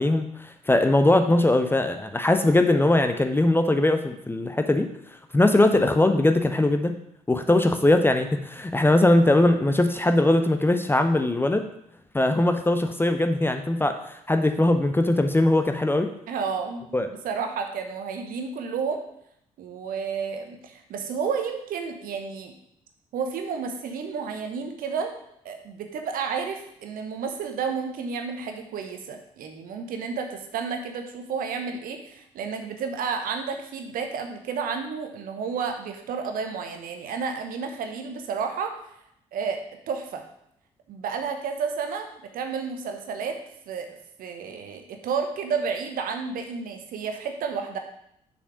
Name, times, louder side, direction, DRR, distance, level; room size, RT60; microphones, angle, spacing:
voice 1, 0.0-4.9 5.3-6.9 7.3-11.6 12.1-16.1 16.9-17.1, left 1 dB, 10° left, 7 dB, 0.7 m, -21 dB
voice 2, 16.3-19.0 19.6-22.5 23.1-25.2 25.4-38.7 39.3-39.6 39.9-40.2 40.9-42.1 42.3-43.4 43.7-43.9 44.2-47.8, right 5 dB, 55° right, 5 dB, 1.0 m, -31 dB
6.7 x 5.2 x 5.1 m, 0.74 s
figure-of-eight pair, 45°, 18 cm